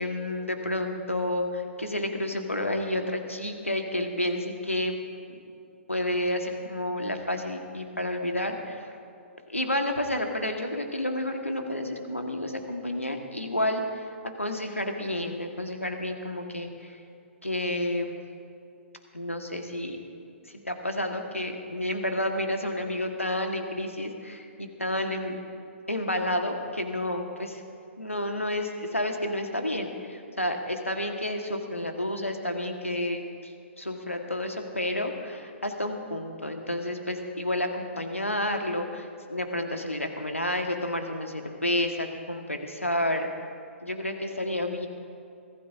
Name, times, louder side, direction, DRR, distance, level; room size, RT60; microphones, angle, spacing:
voice 1, 0.0-5.0 5.9-8.9 9.5-17.0 17.4-18.2 19.1-20.0 20.6-25.4 25.9-27.6 28.0-33.5 33.8-43.3 43.8-44.9, left 1 dB, 85° left, 4 dB, 1.7 m, -30 dB
24.5 x 16.5 x 2.8 m, 2.4 s
figure-of-eight pair, 115°, 7 cm